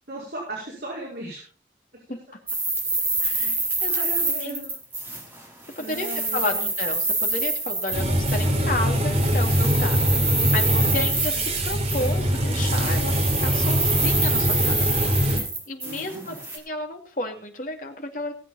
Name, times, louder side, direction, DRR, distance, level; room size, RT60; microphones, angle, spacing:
voice 1, 0.1-1.4 3.4-3.5 3.9-4.7 5.8-6.7 15.8-16.4, right 1 dB, 65° right, -5 dB, 5.2 m, -37 dB
sound 1, 2.5-5.4 5.7-8.5 9.1-12.4 12.6-16.6, right 2 dB, 10° right, 4.0 m, -26 dB
voice 2, 3.2-4.6 5.8-18.3, left 2 dB, 45° left, 3 dB, 2.6 m, -32 dB
sound 2, 7.9-15.4, equal, 40° right, 3.7 m, -23 dB
19.0 x 8.2 x 4.2 m, 0.40 s
head